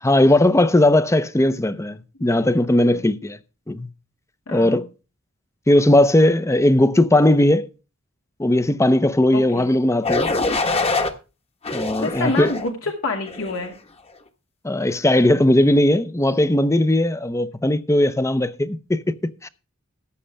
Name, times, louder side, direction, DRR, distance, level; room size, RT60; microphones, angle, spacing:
voice 1, 0.0-3.4 3.7-3.9 4.5-4.8 5.7-7.7 8.4-10.3 11.7-12.5 14.6-19.0 19.4-19.5, left 1 dB, 15° left, 0.7 m, -18 dB
voice 2, 4.5-4.8 9.3-9.7 12.0-13.7, left 3 dB, 75° left, 2.3 m, -27 dB
sound 1, 10.0-11.1 11.6-12.7 13.3-13.6, left 3 dB, 30° left, 1.4 m, -24 dB
14.5 x 9.9 x 3.4 m
head